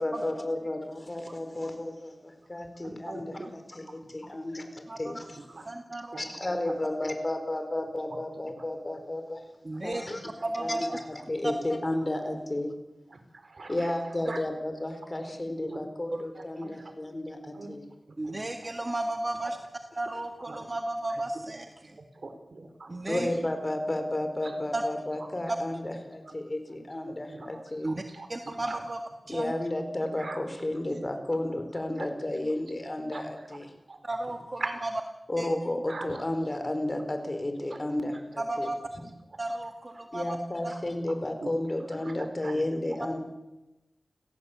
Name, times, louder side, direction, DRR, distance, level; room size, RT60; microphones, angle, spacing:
voice 1, 0.0-3.3 3.7-5.4 6.2-9.4 9.8-10.3 10.6-12.7 13.7-17.8 23.1-27.9 29.3-33.7 35.3-38.7 40.1-43.2, left 1 dB, 30° left, 6 dB, 4.7 m, -32 dB
voice 2, 2.8-3.5 3.9-4.0 5.3-5.7 6.1-6.7 8.6-8.7 10.3-10.5 11.0-11.3 13.1-14.4 15.6-15.8 16.3-17.0 17.5-17.7 18.1-18.4 18.7-18.9 20.0-20.1 20.4-20.7 21.1-21.5 21.9-23.5 24.4-24.5 25.2-25.3 26.2-26.3 27.0-28.8 29.3-29.4 30.2-30.4 31.7-32.1 33.1-33.6 33.9-34.0 34.2-34.8 35.9-36.2 36.6-36.7 37.7-37.8 38.1-38.4 40.7-40.8 41.4-41.5 42.0-42.1 42.4-42.6, right 3 dB, 60° right, 7 dB, 4.3 m, -43 dB
voice 3, 5.7-6.1 9.7-10.0 10.4-11.0 11.4-11.5 16.1-16.2 18.2-19.6 20.0-21.6 22.9-23.3 24.7-24.8 27.8-28.0 28.3-29.0 29.3-29.5 34.0-34.9 35.4-35.5 38.4-38.8 39.4-40.2 40.6-40.7, right 2 dB, 30° right, 5 dB, 1.8 m, -33 dB
30.0 x 17.0 x 8.6 m, 1.0 s
wide cardioid pair, 90°, 0 cm